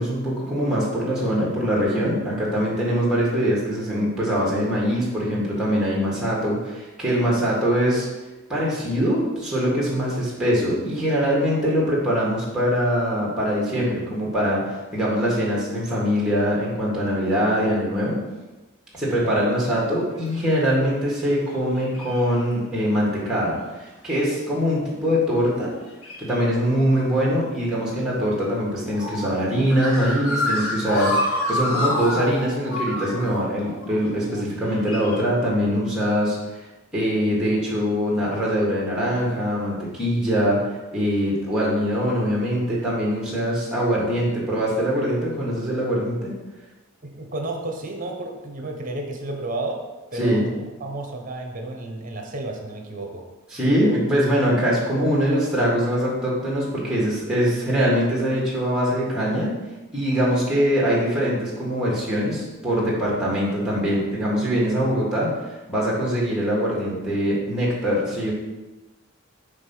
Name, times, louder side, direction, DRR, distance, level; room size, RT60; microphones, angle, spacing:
voice 1, 0.0-8.1 8.5-18.2 18.9-25.7 26.2-36.4 36.9-46.3 50.1-50.4 53.5-59.5 59.9-68.3, equal, 5° right, -5 dB, 1.5 m, -23 dB
sound 1, 20.3-20.4 21.2-21.5 21.8-22.5 23.3-23.5 25.9-26.5 28.2-35.2, left 1 dB, 80° left, 1.1 m, -28 dB
voice 2, 47.0-49.8 50.1-53.2, right 2 dB, 40° right, 2 dB, 0.9 m, -32 dB
5.2 x 3.4 x 5.5 m, 1.1 s
head